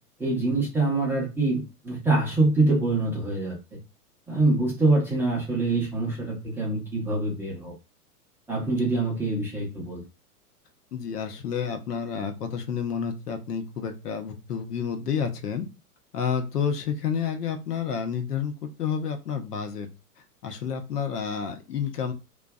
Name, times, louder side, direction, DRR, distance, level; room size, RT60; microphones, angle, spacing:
voice 1, 0.2-3.6 4.3-7.7 8.5-10.0, right 2 dB, 5° right, -5 dB, 0.4 m, -25 dB
voice 2, 10.9-15.7 16.1-19.9 20.4-22.1, left 7 dB, 85° left, 6 dB, 0.7 m, -30 dB
2.5 x 2.2 x 2.2 m, 0.28 s
hypercardioid pair, 110°, 46 cm